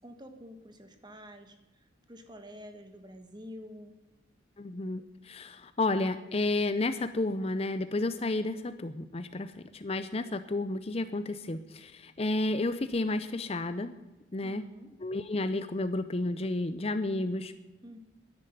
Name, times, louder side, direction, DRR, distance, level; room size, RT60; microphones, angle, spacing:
voice 1, 0.0-3.9 14.4-14.9 17.8-18.0, left 1 dB, 20° right, 7 dB, 1.4 m, -48 dB
voice 2, 4.6-13.9 14.3-14.7 15.0-17.5, left 2 dB, 30° left, 11 dB, 0.5 m, -31 dB
11.0 x 10.5 x 9.1 m, 1.1 s
head